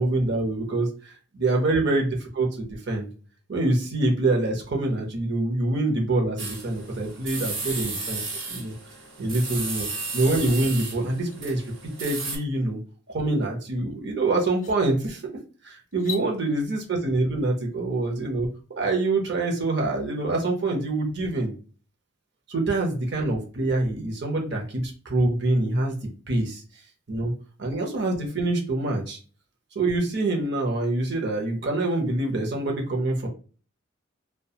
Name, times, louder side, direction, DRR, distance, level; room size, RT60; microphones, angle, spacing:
voice 1, 0.0-2.1 2.3-3.1 3.5-8.2 8.5-8.7 9.2-9.9 10.1-12.8 13.1-15.2 15.6-21.5 22.5-25.9 26.3-26.6 27.1-27.3 27.6-29.2 29.7-33.3, right 2 dB, 55° right, 1 dB, 0.7 m, -25 dB
sound 1, 6.4-12.4, right 3 dB, 80° right, 1.0 m, -34 dB
sound 2, 11.3-11.4 11.8-12.3 13.9-14.0 14.5-14.8 15.9-16.3, left 7 dB, 40° left, 0.5 m, -38 dB
2.4 x 2.2 x 2.7 m, 0.39 s
head